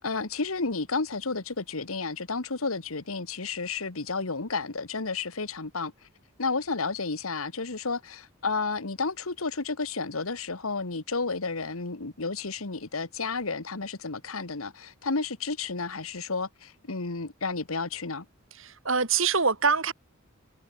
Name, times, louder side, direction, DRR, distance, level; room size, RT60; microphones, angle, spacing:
voice 1, 0.0-5.9 6.4-18.2, left 4 dB, 85° left, 1.7 m, -31 dB
voice 2, 18.6-19.9, right 5 dB, 65° right, 3.8 m, -24 dB
head